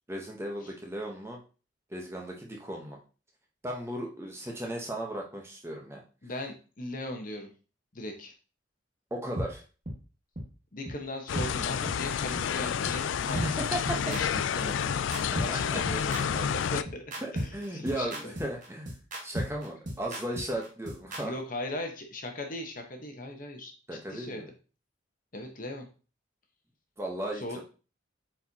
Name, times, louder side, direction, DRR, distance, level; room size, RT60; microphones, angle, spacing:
voice 1, 0.1-1.4 1.9-3.0 3.6-6.0 9.1-9.6 13.4-13.8 15.5-15.8 17.2-18.9 19.2-21.3 23.9-24.4 27.0-27.6, right 1 dB, 15° right, 0 dB, 1.0 m, -36 dB
voice 2, 6.2-7.5 7.9-8.3 10.7-13.6 13.8-14.9 15.4-17.0 17.3-18.3 21.2-24.5 25.3-25.9 27.3-27.6, left 1 dB, 40° left, 3 dB, 1.1 m, -38 dB
sound 1, 9.4-9.5 9.8-10.0 10.3-10.4 10.9-11.0 11.3-11.5 11.8-12.0 12.3-12.4 12.9-13.0 13.3-21.2, equal, 40° right, 1.5 m, -34 dB
sound 2, 11.3-16.8, left 8 dB, 70° left, 0.3 m, -30 dB
8.0 x 4.6 x 2.9 m, 0.35 s
head